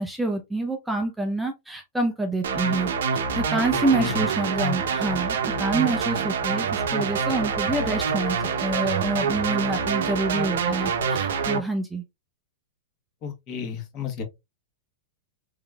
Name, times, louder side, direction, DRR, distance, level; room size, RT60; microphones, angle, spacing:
voice 1, 0.0-12.0, right 2 dB, 5° right, 0.5 m, -27 dB
sound 1, 2.4-11.6, right 6 dB, 85° right, 0.7 m, -26 dB
voice 2, 3.9-4.2 13.2-14.2, left 6 dB, 35° left, 1.2 m, -31 dB
3.6 x 3.6 x 2.2 m
supercardioid pair, 150°, 0 cm